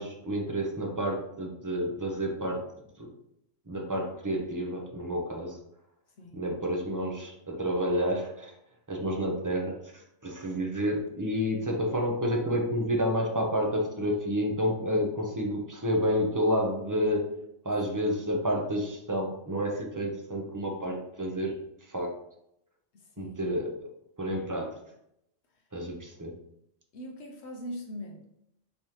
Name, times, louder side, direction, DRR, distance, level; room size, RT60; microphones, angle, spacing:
voice 1, 0.0-2.7 3.0-3.1 3.7-5.6 6.3-8.5 8.9-17.4 17.6-21.5 21.9-22.1 23.2-23.9 24.2-24.7 25.7-26.3, equal, 20° right, 0 dB, 0.5 m, -30 dB
voice 2, 22.9-23.4 26.9-28.2, equal, 60° left, 1 dB, 1.0 m, -41 dB
5.3 x 3.1 x 2.9 m, 0.77 s
omnidirectional pair, 1.3 m